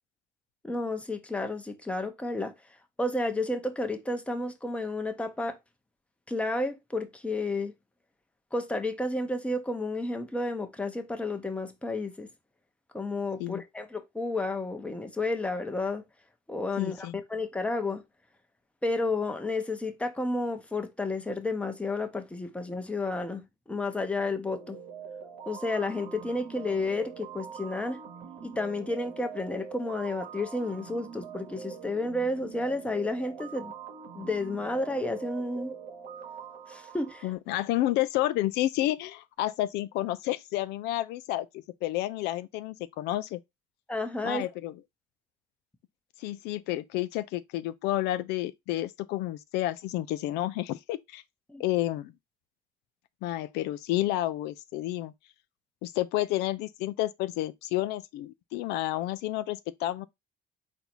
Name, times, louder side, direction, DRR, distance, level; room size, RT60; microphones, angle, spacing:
voice 1, 0.6-2.5 3.0-5.6 6.3-7.7 8.5-12.3 12.9-16.0 16.5-18.0 18.8-24.8 25.5-28.0 28.4-33.7 34.1-35.7 36.7-37.3 43.9-44.5 51.5-51.6, left 2 dB, 5° left, 0.7 m, -31 dB
voice 2, 16.8-17.2 37.2-41.5 41.8-43.4 44.2-44.7 46.2-51.2 51.6-52.1 53.2-55.1 55.8-60.1, left 15 dB, 90° left, 0.4 m, -30 dB
sound 1, 24.5-37.3, right 7 dB, 80° right, 1.1 m, -44 dB
4.0 x 2.7 x 4.3 m
cardioid pair, 110°, 17 cm